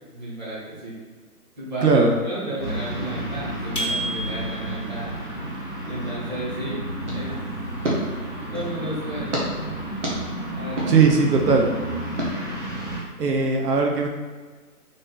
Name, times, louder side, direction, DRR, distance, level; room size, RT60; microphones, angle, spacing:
voice 1, 0.1-1.0 1.6-5.2 5.9-6.8 7.1-7.4 8.5-9.5 10.6-11.0, right 1 dB, 30° right, -9 dB, 1.1 m, -32 dB
voice 2, 1.8-2.1 10.9-11.7 13.2-14.1, right 4 dB, 85° right, 1 dB, 0.8 m, -18 dB
sound 1, 2.6-13.0, right 1 dB, 10° right, 0.9 m, -32 dB
sound 2, 3.8-4.8, right 1 dB, 40° left, 0.4 m, -29 dB
sound 3, 7.0-8.8 9.3-9.5 10.0-10.2 10.8-10.9 11.5-11.6 12.2-12.3, right 1 dB, 50° right, 1.1 m, -29 dB
3.5 x 2.6 x 3.8 m, 1.4 s
hypercardioid pair, 175°, 46 cm